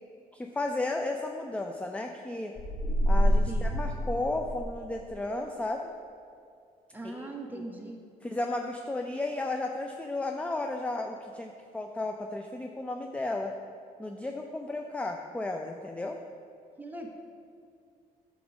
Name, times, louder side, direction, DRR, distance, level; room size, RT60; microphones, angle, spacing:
voice 1, 0.3-2.5 3.1-5.9 7.0-7.3 7.5-7.6 8.2-13.5 14.0-16.2, left 2 dB, 10° left, 3 dB, 0.4 m, -34 dB
sound 1, 2.6-5.0, equal, 30° left, 1.1 m, -27 dB
voice 2, 6.9-8.0 16.8-17.1, right 2 dB, 10° right, 1 dB, 1.1 m, -40 dB
9.0 x 3.0 x 6.1 m, 2.3 s
cardioid pair, 80°, 15 cm